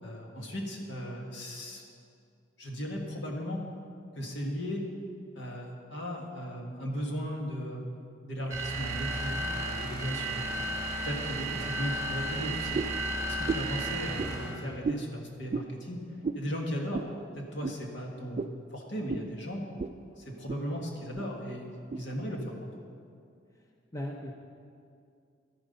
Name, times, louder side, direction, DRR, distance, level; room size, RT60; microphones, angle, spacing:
voice 1, 0.0-1.8 2.6-3.6 4.2-4.8 5.4-10.6 11.0-12.9 13.3-16.0 16.3-17.0 17.4-19.6 20.2-22.7, equal, 65° left, 0 dB, 1.8 m, -36 dB
sound 1, 8.5-14.7, right 1 dB, 15° right, 1.9 m, -34 dB
voice 2, 9.8-10.2 11.5-11.7 23.9-24.3, left 1 dB, 15° left, 1 dB, 0.7 m, -38 dB
sound 2, 12.7-13.0 13.4-13.8 14.2-14.3 14.8-15.0 15.5-15.7 16.2-16.4 16.9-17.1 17.6-17.8 18.3-18.6 19.1-19.3 19.8-20.0 20.3-20.6 21.1-21.3 21.9-22.0, right 4 dB, 35° right, 0.3 m, -33 dB
12.0 x 10.5 x 5.4 m, 2.4 s
head